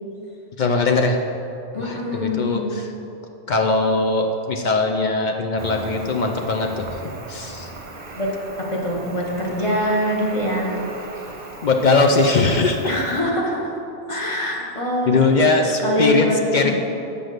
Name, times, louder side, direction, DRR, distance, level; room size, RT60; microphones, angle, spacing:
voice 1, 0.6-1.2 1.8-2.9 3.5-6.9 7.3-7.7 11.6-12.9 14.1-14.2 15.1-16.7, left 3 dB, 55° left, 3 dB, 0.5 m, -20 dB
voice 2, 1.7-2.7 8.1-10.7 12.8-13.7 14.1-15.5 15.8-16.7, equal, 30° left, -3 dB, 1.2 m, -24 dB
Cricket, 5.6-13.2, right 2 dB, 40° right, 0.8 m, -37 dB
6.2 x 5.0 x 6.5 m, 2.8 s
omnidirectional pair, 1.2 m